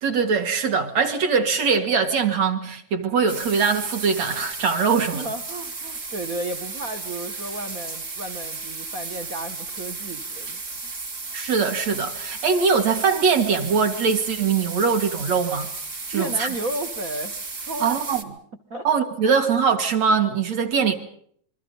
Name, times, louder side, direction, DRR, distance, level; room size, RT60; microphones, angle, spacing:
voice 1, 0.0-5.3 11.3-15.7 16.1-16.5 17.8-18.2 18.8-20.9, right 5 dB, 55° right, 3.2 m, -22 dB
sound 1, 3.3-18.2, right 3 dB, 35° right, 1.3 m, -34 dB
voice 2, 4.9-10.6 16.1-18.0 18.7-18.9, right 2 dB, 70° right, 0.8 m, -33 dB
27.0 x 22.5 x 5.5 m
omnidirectional pair, 3.8 m